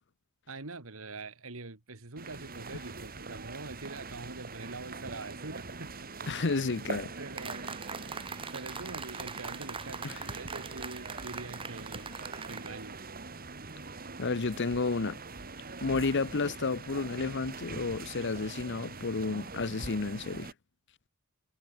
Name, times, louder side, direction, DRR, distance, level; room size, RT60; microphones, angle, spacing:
voice 1, 0.5-6.1 6.8-6.9 7.2-7.7 8.1-12.1 12.5-13.0, right 3 dB, 70° right, 2.0 m, -44 dB
sound 1, 2.2-20.5, right 3 dB, 45° right, 3.4 m, -43 dB
voice 2, 6.3-7.1 10.0-10.2 14.2-15.2 15.8-20.5, left 3 dB, 55° left, 0.8 m, -31 dB
sound 2, 7.4-12.7, right 5 dB, 25° right, 1.5 m, -42 dB
head